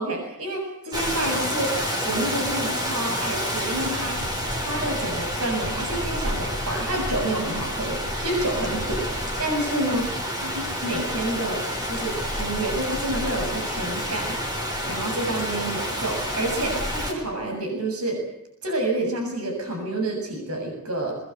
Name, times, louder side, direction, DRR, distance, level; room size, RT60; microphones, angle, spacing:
voice 1, 0.0-4.2 4.6-9.0 9.4-10.1 10.4-14.4 14.9-18.3 18.6-21.2, right 1 dB, 75° right, 3 dB, 7.4 m, -28 dB
Rain, 0.9-17.1, equal, 20° right, 5.1 m, -29 dB
23.5 x 21.5 x 8.0 m, 0.82 s
head